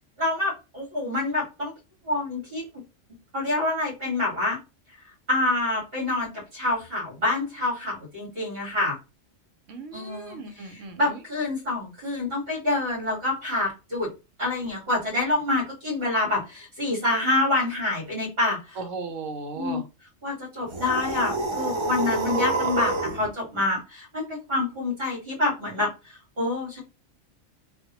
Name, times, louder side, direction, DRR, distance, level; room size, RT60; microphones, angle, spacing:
voice 1, 0.2-1.7 2.1-2.6 3.3-4.6 5.3-9.0 9.9-10.4 11.0-14.1 14.4-18.8 19.5-19.8 20.2-25.9 26.4-26.8, left 2 dB, 50° right, -4 dB, 2.1 m, -27 dB
voice 2, 9.7-11.2 18.8-19.8, right 4 dB, 80° right, 6 dB, 1.1 m, -36 dB
sound 1, 20.7-23.3, right 3 dB, 35° right, 0.5 m, -27 dB
3.5 x 2.6 x 2.8 m, 0.28 s
omnidirectional pair, 1.3 m